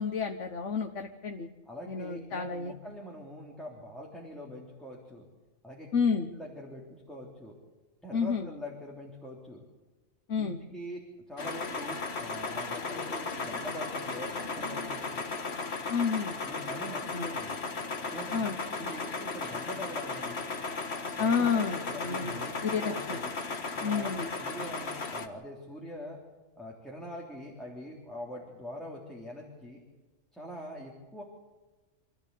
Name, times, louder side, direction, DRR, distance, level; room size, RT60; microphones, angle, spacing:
voice 1, 0.0-1.5 1.8-2.7 5.9-6.3 8.1-8.5 10.3-10.6 15.9-16.3 17.1-17.3 18.3-18.9 21.2-23.2 23.8-24.3, left 5 dB, 85° left, 4 dB, 1.5 m, -30 dB
voice 2, 1.6-5.3 5.6-5.9 6.2-7.5 8.0-9.6 10.4-15.3 16.4-17.6 18.0-20.4 21.1-23.3 23.7-24.1 24.4-26.2 26.5-29.8 30.3-31.2, left 1 dB, ahead, -3 dB, 3.4 m, -43 dB
sound 1, 11.4-25.3, left 4 dB, 60° left, 2.0 m, -36 dB
26.5 x 14.5 x 8.4 m, 1.2 s
omnidirectional pair, 1.2 m